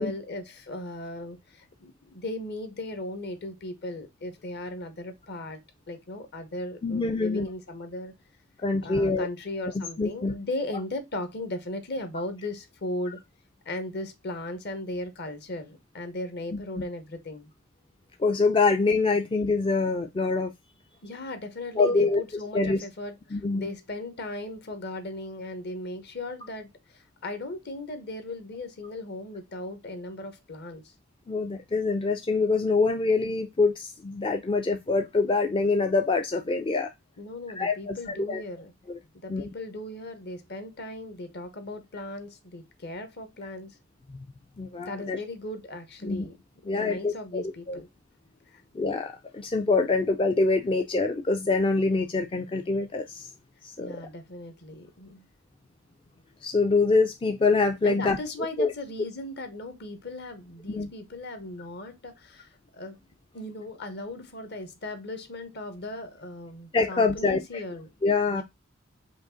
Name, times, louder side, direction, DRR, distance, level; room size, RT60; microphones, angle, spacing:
voice 1, 0.0-5.6 5.9-8.1 8.7-13.2 13.6-17.5 21.0-30.9 37.2-38.7 39.2-43.8 44.9-46.4 46.7-47.9 48.5-48.6 53.8-55.3 57.8-63.0 63.3-67.9 68.3-68.4, left 1 dB, 55° left, 1.0 m, -37 dB
voice 2, 6.8-7.5 8.6-9.3 9.7-10.3 13.1-13.2 16.5-16.6 18.2-20.5 21.8-22.2 22.5-22.8 23.3-23.7 31.3-36.9 37.6-38.4 38.9-39.0 39.3-39.4 44.1-44.2 44.6-45.2 46.0-46.3 46.7-47.8 48.7-53.3 53.6-54.1 56.4-58.2 58.6-58.7 60.7-60.9 66.7-67.4 68.0-68.4, left 3 dB, 25° left, 0.4 m, -25 dB
5.2 x 2.5 x 3.7 m
head